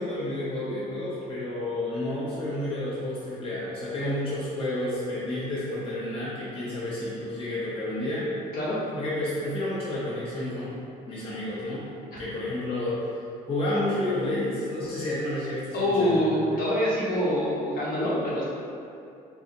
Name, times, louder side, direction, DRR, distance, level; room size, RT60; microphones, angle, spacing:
voice 1, 0.0-8.3 8.9-11.9 12.2-13.1 13.5-16.6, left 1 dB, 35° left, -9 dB, 0.8 m, -30 dB
voice 2, 15.7-18.4, left 1 dB, 60° left, -7 dB, 1.1 m, -25 dB
4.1 x 2.7 x 2.5 m, 2.5 s
cardioid pair, 110°, 17 cm